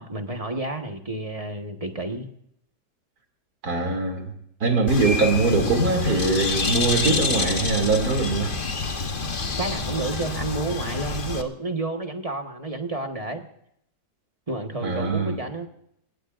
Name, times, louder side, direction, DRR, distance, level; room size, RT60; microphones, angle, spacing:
voice 1, 0.0-2.3 9.6-13.4 14.5-15.7, right 2 dB, 20° right, 4 dB, 1.4 m, -30 dB
voice 2, 3.6-4.3 4.6-8.5 14.8-15.4, right 3 dB, 60° right, 3 dB, 3.2 m, -22 dB
Bird, 4.9-11.4, left 4 dB, 35° left, 1.2 m, -27 dB
29.0 x 16.5 x 2.6 m, 0.73 s
omnidirectional pair, 1.9 m